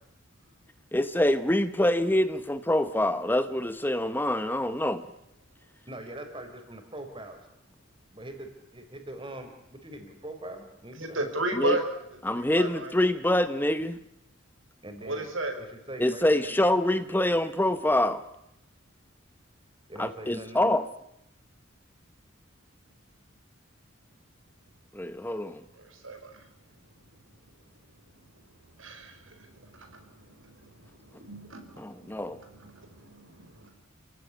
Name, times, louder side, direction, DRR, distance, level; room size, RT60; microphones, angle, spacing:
voice 1, 0.9-5.1 11.6-11.8 12.2-14.0 16.0-18.2 20.0-20.8 24.9-25.6 31.8-32.4, left 1 dB, 10° left, 11 dB, 0.9 m, -25 dB
voice 2, 5.9-7.4 8.1-11.2 14.8-16.5 19.9-20.7, right 1 dB, 25° right, 6 dB, 4.2 m, -42 dB
voice 3, 11.0-12.9 15.0-15.6 25.7-26.5 27.1-27.3 28.0-33.7, right 2 dB, 85° right, 6 dB, 5.4 m, -36 dB
29.5 x 17.0 x 10.0 m, 0.82 s
head